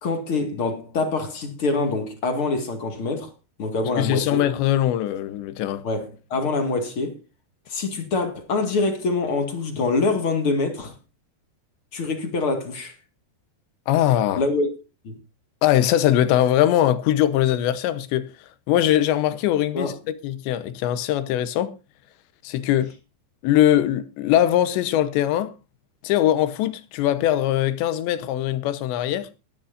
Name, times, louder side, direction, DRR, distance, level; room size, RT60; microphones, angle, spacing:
voice 1, 0.0-3.3 3.6-4.5 5.8-7.2 7.7-10.9 11.9-12.9 14.3-14.7 15.0-15.2 19.7-19.9, left 3 dB, 45° left, 1.9 m, -25 dB
voice 2, 4.0-5.8 13.9-14.4 15.6-18.3 18.7-21.8 22.4-22.9 23.4-25.5 26.0-29.3, left 12 dB, 85° left, 3.3 m, -21 dB
21.0 x 10.0 x 2.6 m
omnidirectional pair, 5.0 m